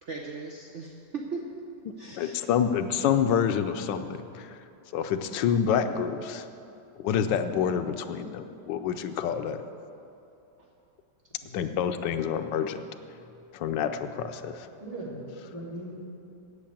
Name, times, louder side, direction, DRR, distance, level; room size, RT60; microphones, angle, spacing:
voice 1, 0.0-2.4 10.6-10.7, right 4 dB, 50° right, 0 dB, 1.0 m, -38 dB
voice 2, 2.2-4.6 4.9-6.5 7.0-9.6 11.5-12.8 13.5-14.7, left 8 dB, 85° left, 9 dB, 1.3 m, -27 dB
voice 3, 14.8-16.0, right 1 dB, 20° right, -6 dB, 2.6 m, -39 dB
8.7 x 8.3 x 8.6 m, 2.7 s
omnidirectional pair, 1.9 m